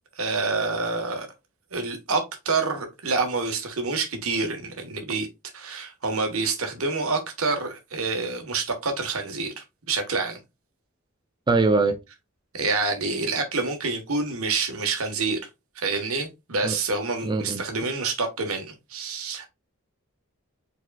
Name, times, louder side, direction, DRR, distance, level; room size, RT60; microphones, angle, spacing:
voice 1, 0.2-1.3 1.7-5.3 5.5-10.4 12.5-15.4 15.8-19.5, right 4 dB, 85° right, 1.3 m, -27 dB
voice 2, 11.5-12.0 16.6-16.8 17.2-17.6, right 3 dB, 20° right, 0.4 m, -22 dB
4.9 x 4.0 x 2.3 m
head